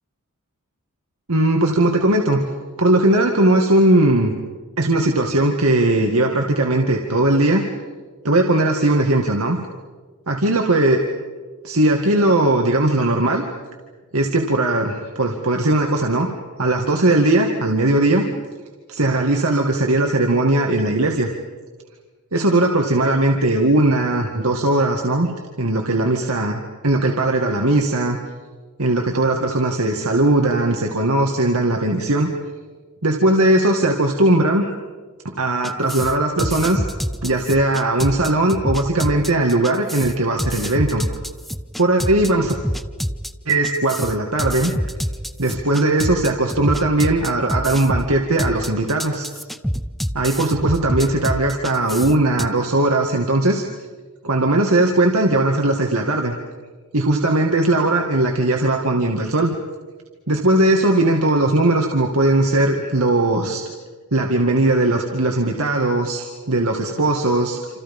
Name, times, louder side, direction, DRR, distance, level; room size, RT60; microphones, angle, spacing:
voice 1, 1.3-2.4 2.8-4.3 4.8-7.6 8.2-9.6 10.3-11.0 11.6-13.4 14.1-16.3 16.6-18.2 18.9-21.3 22.3-25.3 25.6-28.2 28.8-32.3 33.0-34.7 35.2-36.8 37.2-41.1 41.8-42.5 43.5-44.7 45.4-49.3 50.1-53.6 54.2-56.4 56.9-59.5 60.3-63.6 64.1-67.6, right 2 dB, 85° right, 2 dB, 2.0 m, -18 dB
sound 1, 35.6-52.5, equal, ahead, 0.7 m, -26 dB
28.0 x 27.5 x 5.5 m, 1.4 s
head